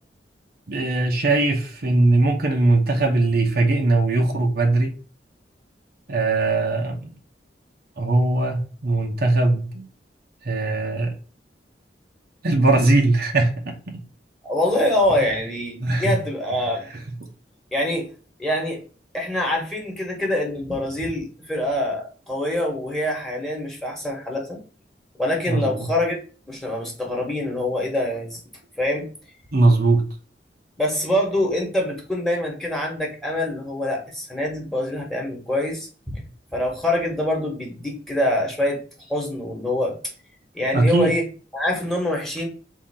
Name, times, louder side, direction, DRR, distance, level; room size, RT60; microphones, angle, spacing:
voice 1, 0.7-4.9 6.1-7.1 8.0-9.9 10.4-11.1 12.4-13.8 15.8-16.1 17.2-17.3 25.5-25.9 29.5-30.0 40.7-41.1, right 2 dB, 60° right, 3 dB, 0.8 m, -20 dB
voice 2, 14.4-16.8 17.7-18.1 18.4-18.8 19.1-24.6 25.2-26.2 26.5-28.4 28.8-29.1 30.8-36.2 36.5-38.8 39.1-40.0 40.5-41.2 41.5-42.5, left 1 dB, ahead, -1 dB, 1.3 m, -25 dB
3.8 x 2.8 x 4.2 m, 0.38 s
head